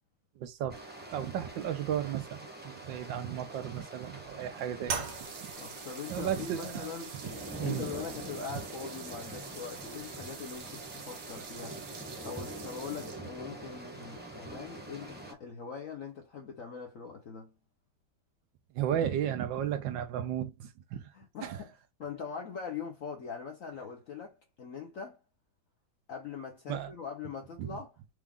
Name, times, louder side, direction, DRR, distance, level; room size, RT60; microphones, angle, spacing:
voice 1, 0.4-0.8 1.1-4.9 5.4-5.5 6.1-6.9 7.6-7.8 18.7-21.0 21.4-21.6 26.7-26.9 27.6-27.7, right 10 dB, 85° right, 1.4 m, -34 dB
sound 1, 0.7-15.3, right 1 dB, 10° right, 0.7 m, -45 dB
sound 2, 4.9-13.5, right 6 dB, 55° right, 1.1 m, -43 dB
voice 2, 5.6-7.2 7.6-12.0 12.2-17.5 21.1-21.7 22.0-25.2 26.1-28.0, left 6 dB, 55° left, 1.1 m, -42 dB
4.7 x 2.5 x 3.5 m
omnidirectional pair, 2.0 m